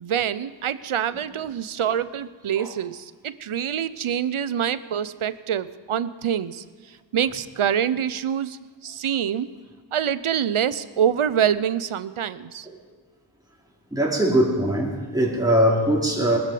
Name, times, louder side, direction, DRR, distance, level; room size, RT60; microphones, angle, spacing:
voice 1, 0.0-9.5 9.9-12.7, right 9 dB, 80° right, 0.7 m, -26 dB
voice 2, 13.9-16.4, right 1 dB, 5° right, 2.8 m, -21 dB
19.5 x 13.5 x 5.0 m
wide cardioid pair, 60°, 49 cm